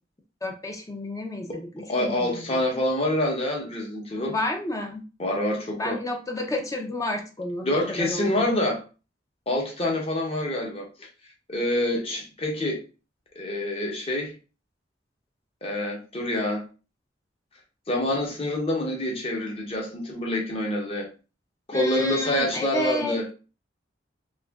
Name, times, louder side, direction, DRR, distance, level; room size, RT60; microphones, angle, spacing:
voice 1, 0.4-2.6 4.3-5.0 5.7-8.5 21.7-23.2, left 1 dB, 20° left, 0.6 m, -31 dB
voice 2, 1.9-4.3 5.2-6.0 7.6-8.8 9.5-11.1 11.5-12.8 13.4-14.3 15.6-16.6 17.9-21.1 21.7-23.2, left 1 dB, 35° left, 0.9 m, -26 dB
2.9 x 2.5 x 3.4 m
head